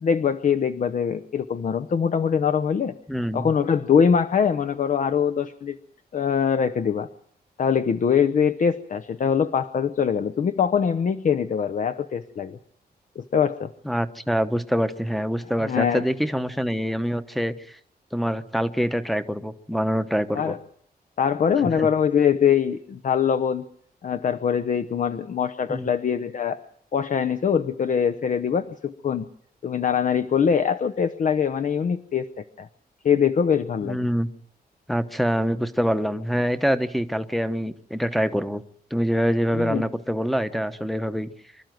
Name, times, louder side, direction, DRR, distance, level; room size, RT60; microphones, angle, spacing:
voice 1, 0.0-2.9 3.3-5.8 6.1-7.1 7.6-12.6 13.2-13.7 15.6-16.0 20.3-20.6 21.2-23.6 24.0-26.6 26.9-29.3 29.6-32.7 33.0-34.0 39.5-39.8, left 7 dB, 50° left, 10 dB, 0.8 m, -23 dB
voice 2, 3.1-3.5 13.8-17.5 18.1-20.5 21.8-21.9 25.7-25.9 33.8-34.3 34.9-38.6 38.9-41.3, equal, ahead, 11 dB, 1.0 m, -25 dB
25.5 x 13.0 x 9.2 m, 0.64 s
wide cardioid pair, 175°, 17 cm